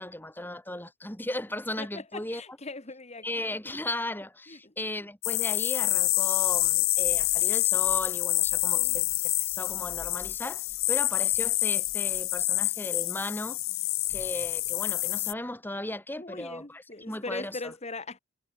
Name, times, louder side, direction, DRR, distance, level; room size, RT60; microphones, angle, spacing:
voice 1, 0.0-2.4 3.2-13.6 14.1-17.7, left 1 dB, 10° left, 3.0 m, -36 dB
voice 2, 1.8-3.3 4.5-4.7 8.7-9.0 16.2-18.2, left 3 dB, 30° left, 1.8 m, -40 dB
sound 1, 5.2-15.3, left 20 dB, 80° left, 0.7 m, -27 dB
head